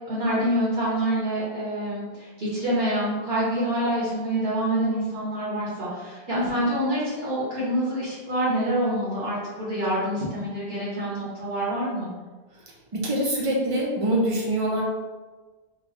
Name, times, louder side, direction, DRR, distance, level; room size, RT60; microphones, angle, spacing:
voice 1, 0.0-12.1, right 1 dB, 60° right, -8 dB, 1.2 m, -26 dB
voice 2, 6.3-6.7 12.9-14.8, right 1 dB, 35° right, -3 dB, 0.6 m, -25 dB
3.1 x 2.1 x 3.9 m, 1.3 s
omnidirectional pair, 1.1 m